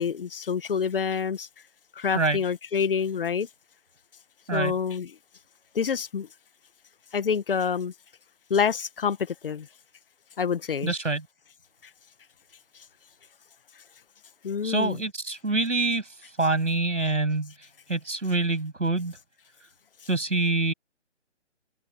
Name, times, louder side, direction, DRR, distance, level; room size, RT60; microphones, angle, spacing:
voice 1, 0.0-1.5 1.9-3.5 4.5-5.1 5.7-6.3 7.1-7.9 8.5-9.7 10.4-10.9 14.4-15.0, left 6 dB, 50° left, 1.6 m, -27 dB
voice 2, 10.8-11.2 14.6-16.0 16.4-17.5 17.9-19.2 20.1-20.7, right 3 dB, 85° right, 7.3 m, -25 dB
figure-of-eight pair, 155°, 36 cm